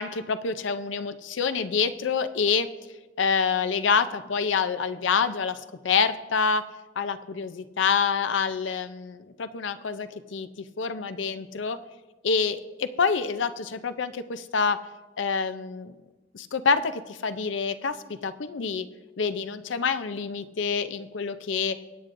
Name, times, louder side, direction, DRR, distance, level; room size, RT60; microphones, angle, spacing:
voice 1, 0.0-2.7 3.2-6.7 7.0-10.5 10.8-11.8 12.2-14.8 15.2-15.9 16.3-18.9 19.2-21.8, left 5 dB, 80° left, 11 dB, 0.6 m, -27 dB
21.5 x 9.8 x 2.6 m, 1.2 s
head